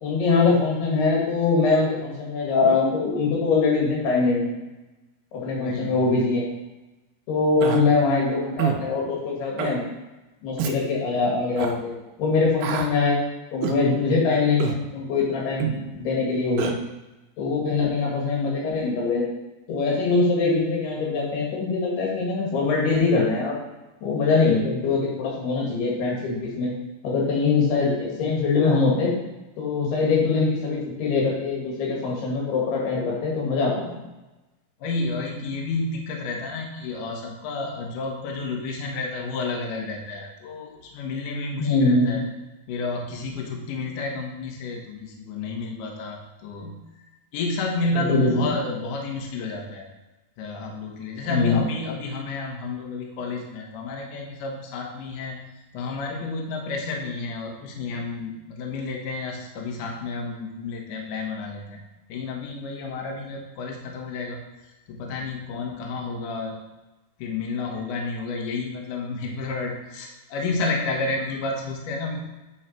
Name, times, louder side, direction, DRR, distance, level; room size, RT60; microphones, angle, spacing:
voice 1, 0.0-4.5 5.3-6.4 7.3-9.9 10.4-11.9 12.2-13.2 13.5-16.7 17.4-19.2 19.7-23.6 24.0-26.7 27.0-29.1 29.6-33.9 41.6-42.2 48.0-48.4 51.3-51.6, left 4 dB, 85° left, -3 dB, 4.1 m, -23 dB
voice 2, 5.6-6.0 34.8-42.2 42.7-46.8 47.3-49.9 50.4-55.4 55.7-61.8 62.1-64.4 64.9-66.6 67.2-72.2, left 3 dB, 65° left, 0 dB, 2.4 m, -30 dB
Human voice, 7.6-7.8 8.6-8.8 9.6-9.8 10.6-10.8 11.6-11.7 12.6-12.9 13.6-13.8 14.6-14.8 15.6-15.8 16.6-16.7, right 10 dB, 80° right, 2.5 m, -26 dB
9.4 x 4.8 x 4.4 m, 1.1 s
omnidirectional pair, 4.5 m